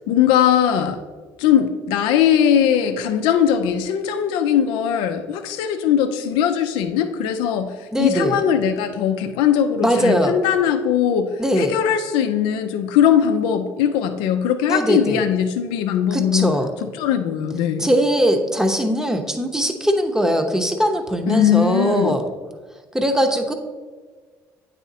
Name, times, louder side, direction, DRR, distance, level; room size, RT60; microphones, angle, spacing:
voice 1, 0.1-1.0 1.4-11.3 11.6-16.5 17.0-17.9 21.3-22.1, left 9 dB, 75° left, 7 dB, 0.4 m, -20 dB
voice 2, 7.9-8.4 9.8-10.4 11.4-11.7 14.7-15.2 16.1-16.7 17.8-22.3 22.9-23.5, equal, 5° right, 5 dB, 0.8 m, -20 dB
9.0 x 4.1 x 2.7 m, 1.4 s
hypercardioid pair, 60°, 9 cm